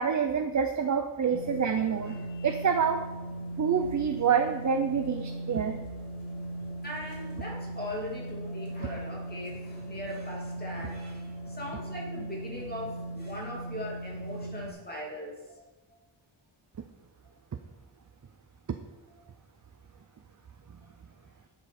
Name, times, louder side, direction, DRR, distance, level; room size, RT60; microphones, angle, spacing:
voice 1, 0.0-2.2 2.4-3.1 3.6-5.8, right 6 dB, 40° right, 7 dB, 0.6 m, -27 dB
sound 1, 1.3-14.7, right 1 dB, 55° left, 2.5 m, -39 dB
voice 2, 2.0-2.5 6.8-15.6, left 1 dB, 20° left, -4 dB, 2.7 m, -40 dB
11.0 x 7.8 x 4.2 m, 1.2 s
wide cardioid pair, 135°, 48 cm